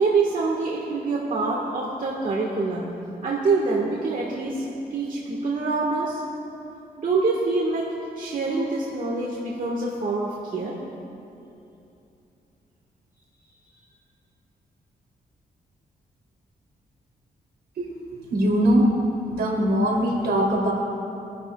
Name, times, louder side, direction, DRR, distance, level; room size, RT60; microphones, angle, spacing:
voice 1, 0.0-2.9 3.2-6.2 7.0-7.9 8.2-10.7, right 3 dB, 55° right, -3 dB, 1.5 m, -25 dB
voice 2, 18.3-18.9 19.3-20.7, equal, 75° right, -2 dB, 3.0 m, -21 dB
24.0 x 11.0 x 2.3 m, 2.8 s
cardioid pair, 80°, 17 cm